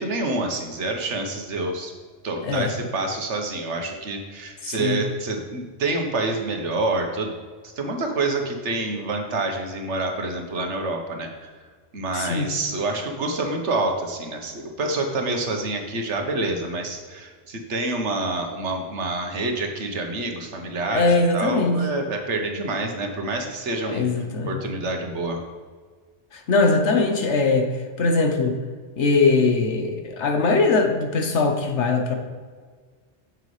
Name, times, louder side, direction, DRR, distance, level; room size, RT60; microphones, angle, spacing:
voice 1, 0.0-1.9 2.2-7.3 7.6-11.5 11.9-21.1 21.3-24.0 24.5-25.4, right 2 dB, 75° right, 3 dB, 1.5 m, -27 dB
voice 2, 4.6-5.0 12.1-12.5 20.9-21.8 23.9-24.6 26.3-27.7 28.0-28.6 29.0-32.1, left 3 dB, 75° left, 4 dB, 1.3 m, -21 dB
9.3 x 7.4 x 3.3 m, 1.5 s
omnidirectional pair, 1.2 m